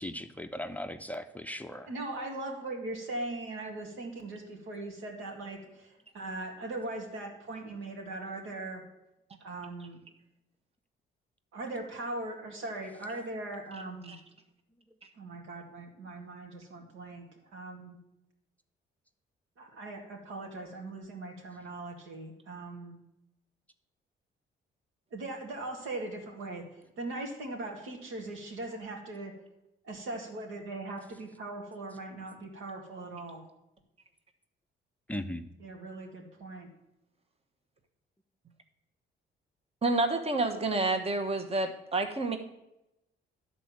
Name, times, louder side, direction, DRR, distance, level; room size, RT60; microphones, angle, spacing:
voice 1, 0.0-1.9 35.1-35.5, left 1 dB, 5° left, 9 dB, 0.5 m, -38 dB
voice 2, 1.8-8.8 9.4-10.0 11.5-14.1 15.2-17.3 17.5-18.0 19.6-23.0 25.1-26.6 27.0-29.3 29.8-33.4 35.6-36.7, right 2 dB, 85° right, 1 dB, 2.3 m, -40 dB
voice 3, 39.8-42.4, right 2 dB, 30° right, 6 dB, 1.2 m, -29 dB
11.0 x 4.3 x 7.4 m, 0.89 s
cardioid pair, 90°, 20 cm